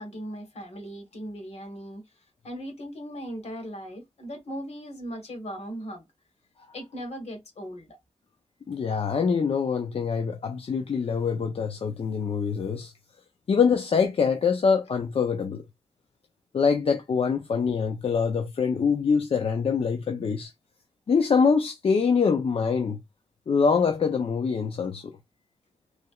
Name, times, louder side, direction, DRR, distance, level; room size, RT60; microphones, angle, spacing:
voice 1, 0.0-2.0 2.4-6.0 6.7-8.0, equal, 80° left, 1.4 m, -38 dB
voice 2, 8.7-12.9 13.5-15.6 16.5-20.5 21.1-23.0 23.5-25.2, left 5 dB, 60° left, 0.5 m, -24 dB
3.2 x 2.8 x 2.3 m
wide cardioid pair, 135°, 11 cm